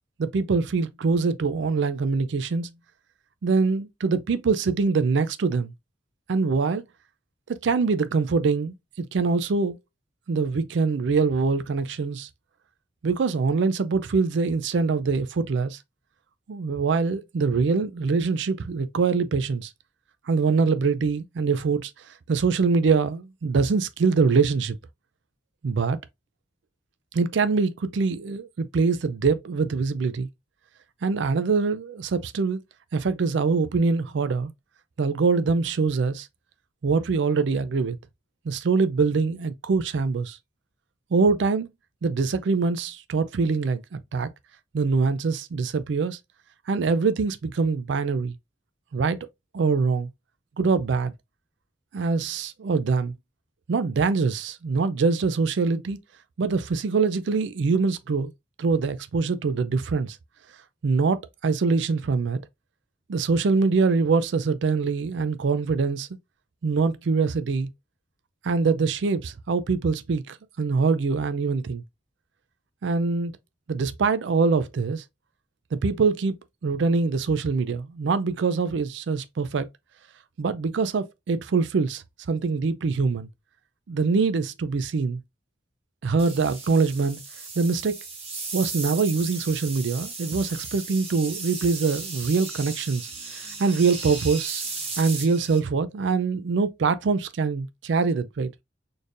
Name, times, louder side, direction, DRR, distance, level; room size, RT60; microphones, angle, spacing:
voice 1, 0.2-2.7 3.4-5.7 6.3-6.8 7.5-9.8 10.3-12.3 13.0-15.8 16.5-19.7 20.3-21.9 22.3-24.7 25.6-26.0 27.1-30.3 31.0-32.6 32.9-34.5 35.0-36.3 36.8-38.0 38.5-40.4 41.1-41.7 42.0-44.3 44.7-46.2 46.7-48.3 48.9-49.2 49.5-50.1 50.6-51.1 51.9-53.1 53.7-56.0 56.4-58.3 58.6-60.2 60.8-62.4 63.1-66.1 66.6-67.7 68.4-71.8 72.8-73.3 73.7-75.0 75.7-76.4 76.6-79.7 80.4-83.3 83.9-85.2 86.0-87.2 87.6-88.0 88.5-94.6 95.0-98.6, right 4 dB, 70° right, 0.4 m, -24 dB
sound 1, 86.2-95.6, right 4 dB, 35° right, 1.2 m, -36 dB
4.2 x 3.3 x 2.5 m
head